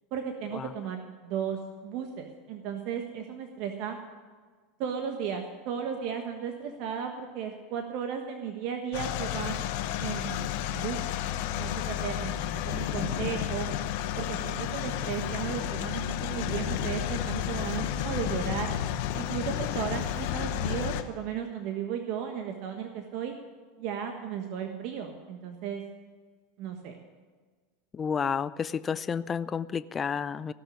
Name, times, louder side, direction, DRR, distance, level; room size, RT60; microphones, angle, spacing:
voice 1, 0.1-4.0 4.8-9.6 10.0-11.0 11.6-12.3 12.6-13.7 14.2-18.7 19.1-23.3 23.8-25.8 26.6-27.0, right 8 dB, 60° right, 4 dB, 1.3 m, -35 dB
sound 1, 8.9-21.0, left 11 dB, 65° left, 1.0 m, -31 dB
voice 2, 27.9-30.5, left 6 dB, 25° left, 17 dB, 0.4 m, -31 dB
16.5 x 6.1 x 9.9 m, 1.5 s
hypercardioid pair, 100°, 0 cm